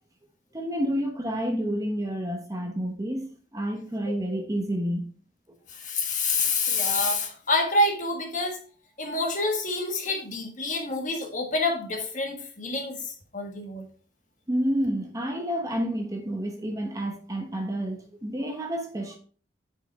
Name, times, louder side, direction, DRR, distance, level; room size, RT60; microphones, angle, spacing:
voice 1, 0.5-3.2 3.5-5.1 14.5-19.2, equal, 20° right, 1.0 m, -29 dB
voice 2, 5.7-8.6 9.0-13.8, left 2 dB, 45° left, 1.5 m, -27 dB
8.6 x 5.1 x 3.4 m
head